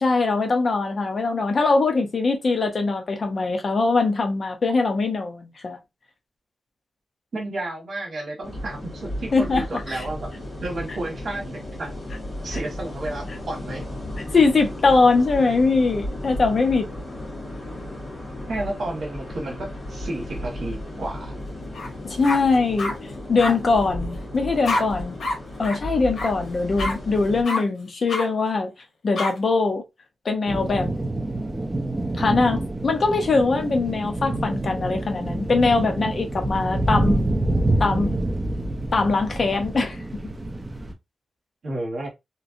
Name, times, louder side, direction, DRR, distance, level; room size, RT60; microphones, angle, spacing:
voice 1, 0.0-5.8 9.3-10.0 12.5-12.6 14.3-16.9 22.0-23.0 23.3-25.2 25.6-28.7 29.0-29.8 30.2-30.9 32.1-37.2 37.8-38.1 38.9-40.0, left 3 dB, 45° left, 0.6 m, -22 dB
voice 2, 7.3-12.0 12.4-13.9 18.5-21.3 41.6-42.1, right 2 dB, 60° right, 1.3 m, -32 dB
sound 1, 8.4-27.4, left 1 dB, 30° left, 1.6 m, -34 dB
sound 2, 21.7-21.9 22.2-22.9 23.4-23.5 24.6-24.8 25.2-25.4 25.6-25.8 26.2-26.3 26.8-26.9 27.5-27.6 28.1-28.3 29.2-29.3, left 2 dB, 90° left, 0.9 m, -26 dB
sound 3, 30.5-40.9, right 1 dB, 20° right, 0.6 m, -27 dB
3.0 x 2.6 x 2.5 m
wide cardioid pair, 130°, 0 cm